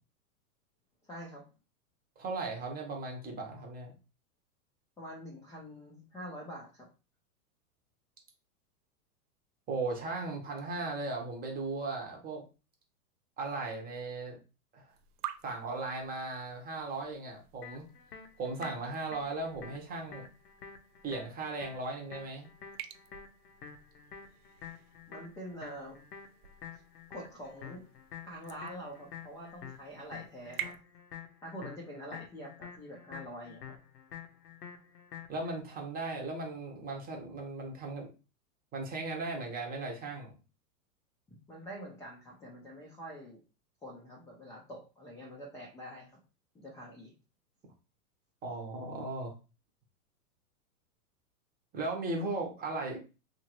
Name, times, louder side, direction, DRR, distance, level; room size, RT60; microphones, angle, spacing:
voice 1, 1.0-1.4 5.0-6.9 25.1-26.0 27.1-27.9 28.3-30.7 31.4-33.8 41.3-43.4 43.8-46.2 46.5-47.1, equal, 5° left, -3 dB, 0.5 m, -45 dB
voice 2, 2.2-3.9 9.7-12.4 13.4-14.4 14.7-14.9 15.4-17.8 18.4-20.3 21.0-22.5 35.3-38.1 38.7-40.3 48.4-49.3 51.7-53.0, right 3 dB, 20° right, 2 dB, 0.9 m, -37 dB
sound 1, 14.9-30.7, right 11 dB, 75° right, 0.6 m, -49 dB
sound 2, 17.6-35.6, left 7 dB, 90° left, 0.8 m, -49 dB
2.8 x 2.5 x 2.9 m, 0.31 s
hypercardioid pair, 120°, 46 cm